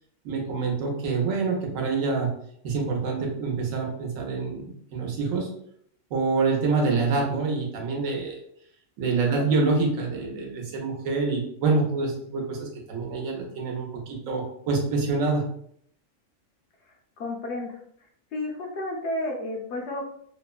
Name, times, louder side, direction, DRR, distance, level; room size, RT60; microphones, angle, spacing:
voice 1, 0.2-2.3 2.6-5.5 6.1-8.4 9.0-15.5, right 4 dB, 80° right, 0 dB, 1.1 m, -26 dB
voice 2, 9.2-9.5 17.2-17.8 18.3-20.1, left 1 dB, 65° left, 0 dB, 0.8 m, -32 dB
2.9 x 2.0 x 2.3 m, 0.67 s
omnidirectional pair, 1.4 m